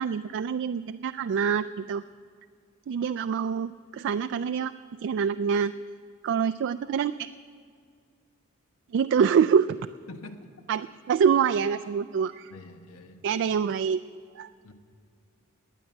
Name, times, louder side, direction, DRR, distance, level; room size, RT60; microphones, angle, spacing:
voice 1, 0.0-2.0 2.9-4.7 5.0-5.7 6.2-7.3 8.9-9.7 10.7-12.5 13.2-14.0 14.4-14.5, right 7 dB, 55° right, 12 dB, 0.3 m, -25 dB
voice 2, 10.1-10.5 12.5-13.2 14.6-14.7, left 2 dB, 80° left, 5 dB, 1.3 m, -45 dB
19.5 x 9.1 x 7.0 m, 2.2 s
head